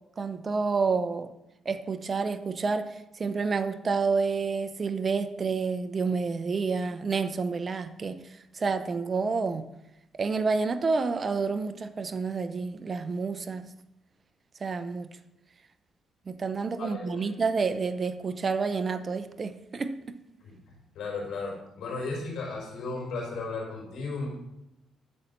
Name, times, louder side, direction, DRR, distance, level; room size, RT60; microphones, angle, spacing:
voice 1, 0.2-1.3 1.6-9.7 10.1-13.7 14.6-15.1 16.3-20.2, right 4 dB, 40° right, 10 dB, 0.7 m, -29 dB
voice 2, 16.8-17.3 20.4-20.6 20.9-24.3, left 3 dB, 80° left, -2 dB, 4.4 m, -35 dB
11.5 x 4.3 x 6.8 m, 0.88 s
cardioid pair, 90°, 0 cm